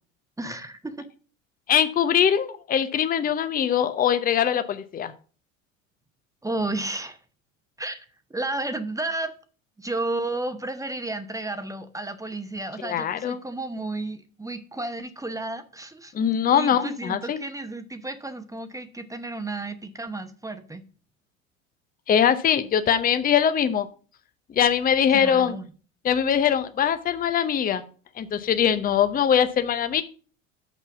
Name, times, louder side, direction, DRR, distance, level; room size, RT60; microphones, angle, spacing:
voice 1, 0.4-1.0 6.4-7.2 7.8-9.3 9.8-16.1 16.5-20.8 25.1-25.7, right 2 dB, 10° right, 10 dB, 0.9 m, -32 dB
voice 2, 1.7-5.1 12.8-13.4 16.1-17.4 22.1-23.9 24.5-25.6 26.0-27.8 28.2-30.0, left 8 dB, 20° left, 11 dB, 0.7 m, -22 dB
6.1 x 5.6 x 6.8 m, 0.39 s
hypercardioid pair, 75°, 40 cm